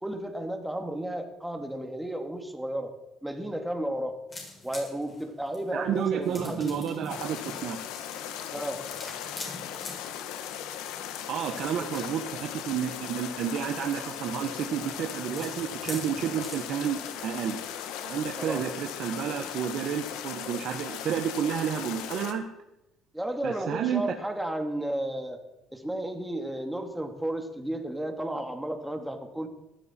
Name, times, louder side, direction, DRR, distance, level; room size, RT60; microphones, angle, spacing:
voice 1, 0.0-2.9 3.2-4.2 4.6-6.7 8.5-8.8 11.8-11.9 18.4-18.6 23.1-25.4 25.7-29.5, right 1 dB, 5° right, 4 dB, 2.4 m, -33 dB
sound 1, 4.3-16.9, left 2 dB, 30° left, 7.0 m, -45 dB
voice 2, 5.7-7.8 11.3-17.6 18.0-22.4 23.4-24.0, right 8 dB, 60° right, 3 dB, 1.5 m, -31 dB
sound 2, 7.1-22.3, left 9 dB, 85° left, 1.6 m, -38 dB
19.0 x 14.5 x 4.6 m, 0.92 s
cardioid pair, 115°, 0 cm